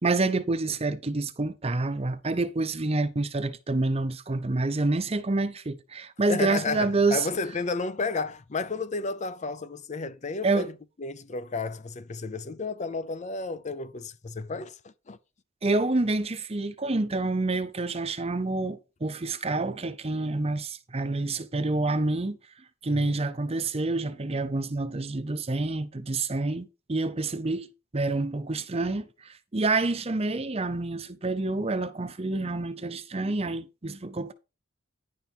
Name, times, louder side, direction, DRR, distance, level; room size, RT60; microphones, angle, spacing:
voice 1, 0.0-7.3 10.4-10.7 15.6-22.4 22.8-34.3, right 2 dB, 30° right, 0.7 m, -28 dB
voice 2, 6.3-10.7 11.0-15.2 22.9-23.2, left 4 dB, 35° left, 0.6 m, -32 dB
10.5 x 5.4 x 4.5 m
head